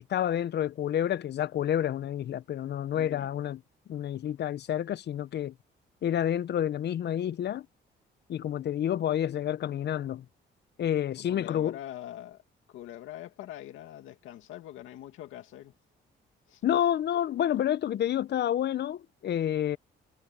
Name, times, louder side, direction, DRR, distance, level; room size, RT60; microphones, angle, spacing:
voice 1, 0.0-3.6 3.9-5.5 6.0-7.7 8.3-10.2 10.8-11.8 16.6-19.8, left 10 dB, 60° left, 0.7 m, -29 dB
voice 2, 2.9-3.3 11.2-12.4 12.7-15.7 16.5-16.6, left 12 dB, 85° left, 2.1 m, -43 dB
cardioid pair, 90°, 20 cm